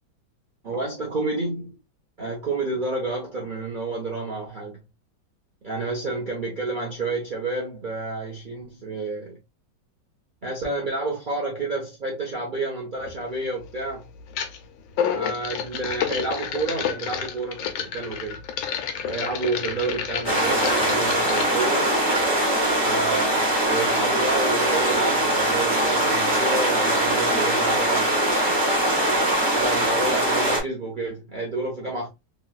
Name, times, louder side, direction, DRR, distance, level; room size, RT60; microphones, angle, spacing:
voice 1, 0.6-1.8 2.2-4.8 5.6-9.4 10.4-14.1 15.1-18.4 19.0-21.9 22.8-28.5 29.5-32.1, right 2 dB, 55° right, 0.5 m, -29 dB
sound 1, 13.0-13.2 14.3-14.6 14.9-21.5, left 8 dB, 90° left, 1.3 m, -30 dB
sound 2, 20.2-30.6, right 1 dB, 25° right, 1.0 m, -22 dB
3.1 x 2.9 x 2.2 m
omnidirectional pair, 1.9 m